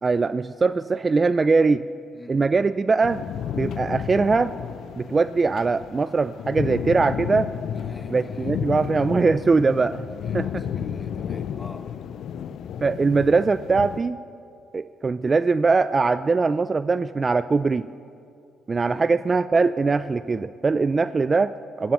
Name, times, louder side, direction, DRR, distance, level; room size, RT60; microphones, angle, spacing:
voice 1, 0.0-1.9 2.3-3.2 3.5-4.6 5.0-7.5 8.1-10.0 10.3-10.6 12.8-14.2 14.7-17.9 18.7-21.9, right 4 dB, 30° right, 14 dB, 0.3 m, -21 dB
voice 2, 2.1-2.4 7.7-9.0 10.1-12.0 18.9-19.1, left 2 dB, 20° left, 5 dB, 1.5 m, -45 dB
sound 1, 3.0-14.0, left 9 dB, 70° left, 0.4 m, -32 dB
26.0 x 13.5 x 3.0 m, 2.4 s
cardioid pair, 90°, 0 cm